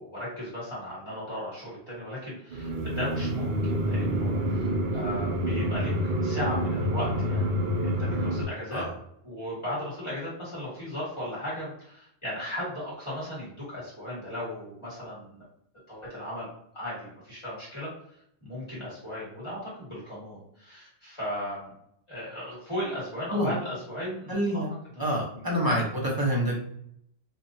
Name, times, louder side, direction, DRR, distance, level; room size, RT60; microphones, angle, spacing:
voice 1, 0.0-8.8 9.2-15.4 15.9-16.5 16.7-17.9 18.4-21.7 22.1-24.6 24.9-25.1 25.3-25.5, left 1 dB, 25° left, -10 dB, 1.6 m, -36 dB
sound 1, 2.5-8.4, equal, 55° right, 0.7 m, -28 dB
voice 2, 24.3-24.7 25.0-26.6, equal, 20° right, -4 dB, 0.9 m, -27 dB
4.6 x 2.5 x 2.7 m, 0.73 s
omnidirectional pair, 1.1 m